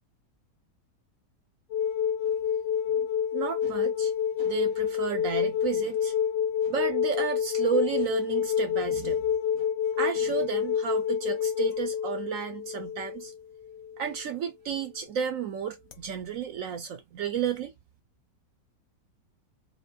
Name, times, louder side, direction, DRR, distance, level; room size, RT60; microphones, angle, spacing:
sound 1, 1.7-14.1 15.9-16.0, left 8 dB, 85° left, 1.3 m, -28 dB
voice 1, 3.3-4.1 4.4-6.1 6.6-9.3 9.6-9.7 10.0-13.3 14.0-17.7, right 7 dB, 70° right, 0.8 m, -32 dB
4.6 x 2.1 x 2.4 m
omnidirectional pair, 1.9 m